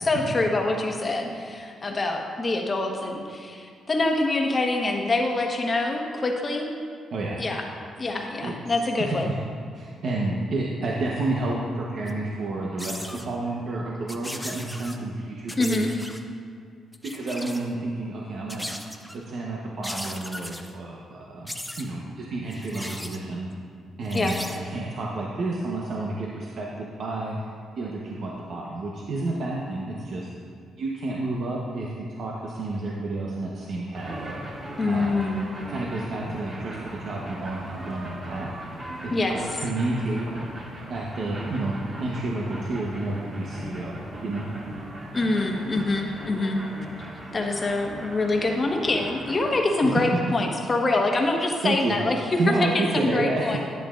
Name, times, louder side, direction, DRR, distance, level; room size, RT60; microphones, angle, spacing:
voice 1, 0.0-6.7 7.4-7.6 8.0-9.3 15.6-15.9 24.1-24.3 34.8-35.5 39.1-39.6 45.1-46.6 47.3-53.6, left 2 dB, 30° left, 2 dB, 1.2 m, -25 dB
voice 2, 9.7-15.9 17.1-18.7 19.3-23.5 24.0-27.4 27.8-30.3 30.8-34.4 34.9-35.2 35.7-38.5 39.0-39.1 39.6-40.3 40.9-41.7 42.0-44.4 49.8-50.0 51.6-52.0 52.4-53.6, right 2 dB, 60° right, -3 dB, 1.0 m, -30 dB
sound 1, 12.1-12.2 12.8-13.3 14.1-15.0 15.5-16.2 16.9-17.7 18.5-19.2 19.8-20.7 21.5-21.9 22.5-23.2 24.0-24.6, left 1 dB, 5° left, 0.6 m, -37 dB
sound 2, 33.9-49.5, right 1 dB, 40° right, 2.4 m, -38 dB
10.5 x 10.0 x 2.5 m, 2.2 s
cardioid pair, 100°, 0 cm